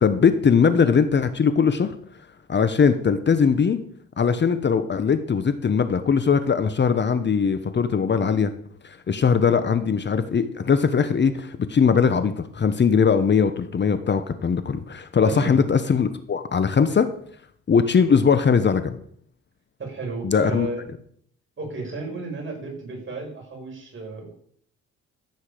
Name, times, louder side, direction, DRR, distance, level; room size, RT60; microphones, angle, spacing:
voice 1, 0.0-1.9 2.5-3.8 4.2-8.5 8.8-17.1 17.7-19.0 20.2-20.7, left 6 dB, 35° left, 10 dB, 1.0 m, -20 dB
voice 2, 15.3-15.6 19.8-20.9 21.6-24.3, right 3 dB, 40° right, 0 dB, 5.6 m, -33 dB
15.0 x 8.1 x 5.1 m, 0.63 s
cardioid pair, 90°, 30 cm